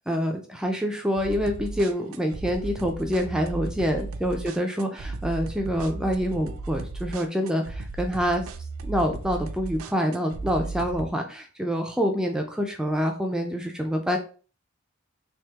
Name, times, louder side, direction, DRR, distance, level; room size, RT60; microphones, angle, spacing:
voice 1, 0.1-8.5 8.8-14.2, equal, 5° right, 3 dB, 0.3 m, -26 dB
sound 1, 1.2-11.1, right 3 dB, 70° right, 0.4 m, -36 dB
3.4 x 3.0 x 2.8 m, 0.38 s
head